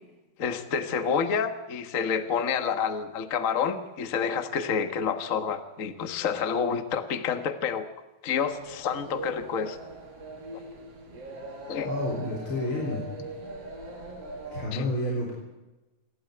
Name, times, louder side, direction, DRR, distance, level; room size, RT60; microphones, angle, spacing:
voice 1, 0.4-7.9 8.2-9.8 11.7-11.9 14.7-14.9, left 6 dB, 70° left, 9 dB, 0.7 m, -28 dB
sound 1, 8.4-14.6, right 2 dB, 45° right, 5.0 m, -40 dB
voice 2, 11.8-13.0 14.5-15.3, left 1 dB, 35° left, -1 dB, 4.5 m, -30 dB
28.0 x 12.5 x 9.4 m, 1.1 s
omnidirectional pair, 4.0 m